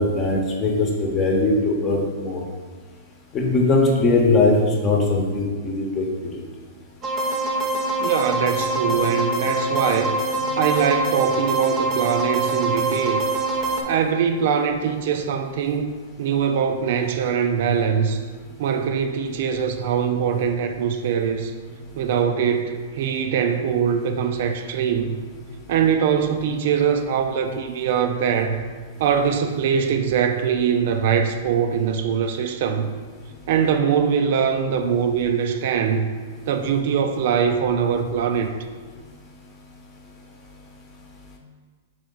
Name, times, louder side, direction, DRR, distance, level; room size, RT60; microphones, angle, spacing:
voice 1, 0.0-2.4 3.3-6.1, left 2 dB, 25° left, -1 dB, 0.9 m, -20 dB
sound 1, 7.0-13.8, right 2 dB, 30° right, 0.7 m, -24 dB
voice 2, 8.0-10.2 10.6-13.2 13.8-18.2 18.6-21.5 21.9-25.2 25.7-28.6 29.0-32.9 33.5-36.1 36.5-38.5, right 7 dB, 60° right, 7 dB, 0.3 m, -22 dB
3.8 x 3.2 x 3.9 m, 1.5 s
hypercardioid pair, 115°, 0 cm